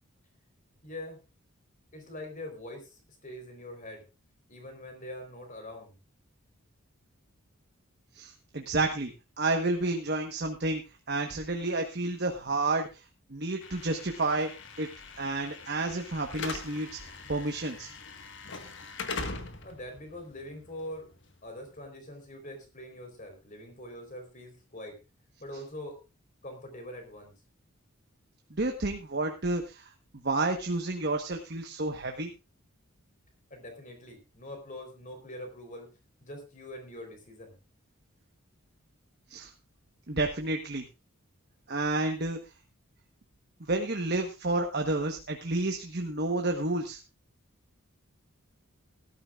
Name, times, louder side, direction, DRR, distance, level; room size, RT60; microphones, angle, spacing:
voice 1, 0.8-1.2 1.9-4.1 4.5-6.0 19.6-21.1 21.4-25.0 25.4-26.0 26.4-27.3 33.5-35.9 36.2-37.6, left 1 dB, 35° left, 5 dB, 4.1 m, -43 dB
voice 2, 8.1-9.1 9.4-10.8 11.1-13.0 13.3-14.5 14.8-14.9 15.2-17.9 28.5-29.9 30.2-32.3 39.3-39.5 40.1-40.9 41.7-42.4 43.7-47.0, right 2 dB, 50° right, 3 dB, 1.2 m, -30 dB
Slam / Alarm, 13.6-21.7, left 4 dB, 55° left, 1.6 m, -42 dB
18.0 x 12.5 x 2.5 m, 0.28 s
head